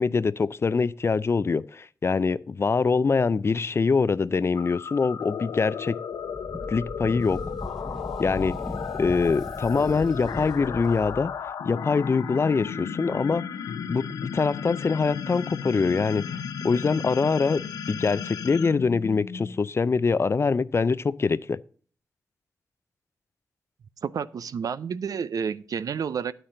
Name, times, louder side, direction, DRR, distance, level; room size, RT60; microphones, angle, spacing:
voice 1, 0.0-6.0 6.7-7.4 8.2-8.6 8.9-11.3 11.6-13.5 13.9-16.3 16.6-21.6, left 4 dB, 40° left, 0.4 m, -24 dB
sound 1, 4.5-19.7, left 7 dB, 85° left, 0.8 m, -34 dB
Wind, 6.1-11.0, left 1 dB, 15° left, 0.9 m, -37 dB
sound 2, 7.2-11.5, equal, 5° right, 1.9 m, -48 dB
voice 2, 24.0-26.3, right 7 dB, 65° right, 0.5 m, -30 dB
9.1 x 8.8 x 3.8 m
cardioid pair, 50°, 6 cm